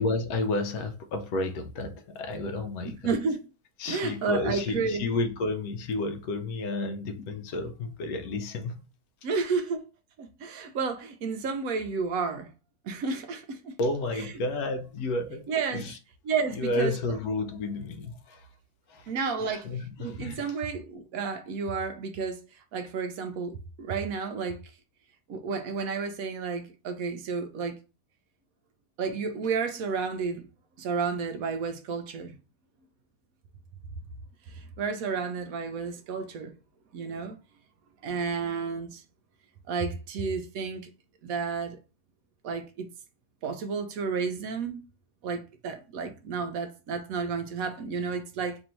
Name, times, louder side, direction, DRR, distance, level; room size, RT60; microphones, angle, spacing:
voice 1, 0.0-3.1 3.8-8.9 13.8-16.0 16.5-18.5 18.9-19.1 19.4-20.6, left 2 dB, 75° left, 1.0 m, -31 dB
voice 2, 3.0-3.4 3.9-5.0 9.2-9.8 10.2-12.5 12.8-13.8 15.5-15.8 16.3-16.9 19.1-19.7 20.0-22.4 22.7-24.6 25.3-27.8 29.0-30.5 30.8-32.3 34.5-36.5 36.9-37.4 38.0-39.0 39.7-40.9 41.2-41.8 42.4-42.9 43.4-44.8 45.2-48.6, right 5 dB, 70° right, 0.9 m, -31 dB
3.0 x 2.6 x 4.3 m
omnidirectional pair, 1.7 m